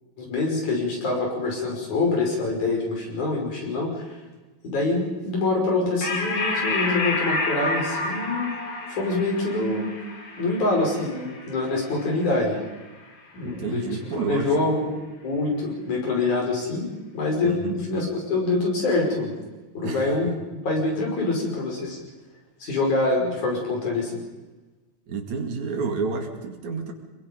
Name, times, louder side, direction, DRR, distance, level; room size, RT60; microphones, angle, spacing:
voice 1, 0.2-4.2 4.6-8.5 8.9-9.9 10.4-12.6 13.3-13.9 14.2-14.9 15.2-16.9 17.1-19.3 19.8-20.3 20.6-22.0 22.6-24.1, left 2 dB, 85° left, -1 dB, 7.0 m, -25 dB
sound 1, 6.0-12.9, left 3 dB, 50° left, 4.1 m, -30 dB
voice 2, 13.4-14.8 17.4-17.8 19.8-20.3 25.1-26.9, right 4 dB, 75° right, 4 dB, 3.7 m, -30 dB
26.5 x 22.0 x 5.4 m, 1.2 s
omnidirectional pair, 3.4 m